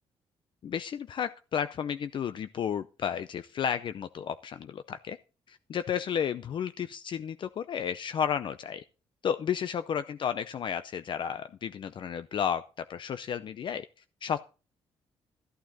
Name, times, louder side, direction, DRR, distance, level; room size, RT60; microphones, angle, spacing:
voice 1, 0.6-5.2 5.5-8.8 9.2-13.9 14.2-14.4, left 8 dB, 55° left, 12 dB, 0.6 m, -32 dB
13.5 x 9.1 x 4.0 m, 0.35 s
cardioid pair, 110°, 10 cm